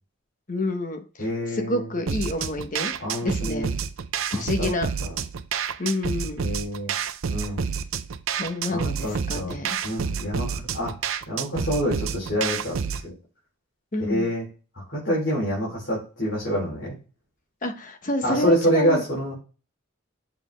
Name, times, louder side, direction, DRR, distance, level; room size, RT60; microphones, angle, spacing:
voice 1, 0.5-2.9 3.2-3.7 4.3-4.9 5.8-6.4 8.3-9.8 13.9-14.3 17.6-19.0, left 2 dB, 40° left, 6 dB, 1.0 m, -28 dB
voice 2, 1.2-1.9 3.0-3.7 4.3-4.7 5.0-5.2 6.4-6.9 7.3-7.7 8.7-10.9 11.3-13.1 14.0-14.4 14.9-16.9 18.2-19.3, equal, 55° left, -6 dB, 3.4 m, -27 dB
sound 1, 2.1-13.1, right 6 dB, 80° right, 0.5 m, -29 dB
7.0 x 4.3 x 3.4 m, 0.34 s
head